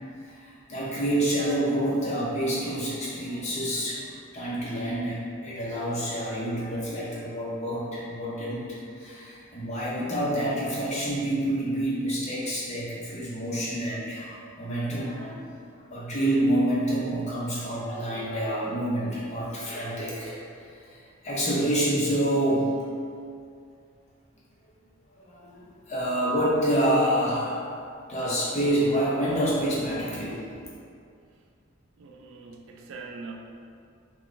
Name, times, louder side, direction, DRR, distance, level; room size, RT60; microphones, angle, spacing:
voice 1, 0.2-4.0 4.3-15.5 15.8-22.9 25.2-30.5, right 1 dB, 35° left, -7 dB, 0.8 m, -28 dB
voice 2, 32.0-33.3, right 4 dB, 65° right, 2 dB, 0.3 m, -42 dB
3.3 x 2.4 x 3.8 m, 2.3 s
head